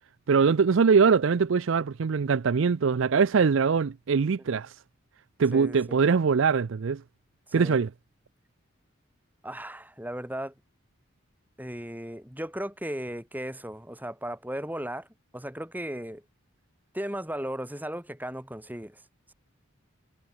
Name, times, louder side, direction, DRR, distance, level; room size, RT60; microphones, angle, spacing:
voice 1, 0.3-4.7 5.4-7.0 7.5-7.9, right 5 dB, 65° right, 0.4 m, -22 dB
voice 2, 5.5-6.0 7.5-7.8 9.4-10.5 11.6-15.1 15.3-16.2 16.9-19.0, right 1 dB, 10° right, 7.2 m, -36 dB
head